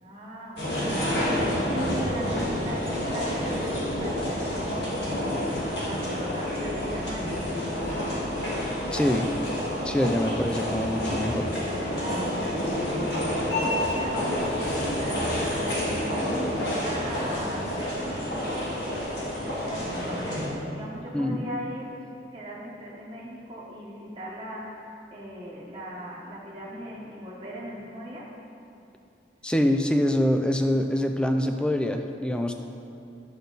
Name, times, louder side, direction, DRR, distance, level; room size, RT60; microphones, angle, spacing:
voice 1, 0.0-5.6 5.8-8.0 11.9-15.9 16.3-22.0 22.3-28.4, equal, 25° right, -6 dB, 1.1 m, -39 dB
sound 1, 0.6-20.5, left 1 dB, 65° left, 1.9 m, -29 dB
voice 2, 8.9-9.3 9.8-11.5 21.1-21.5 29.4-32.5, equal, 5° left, 5 dB, 0.4 m, -25 dB
10.0 x 6.9 x 4.0 m, 2.7 s
head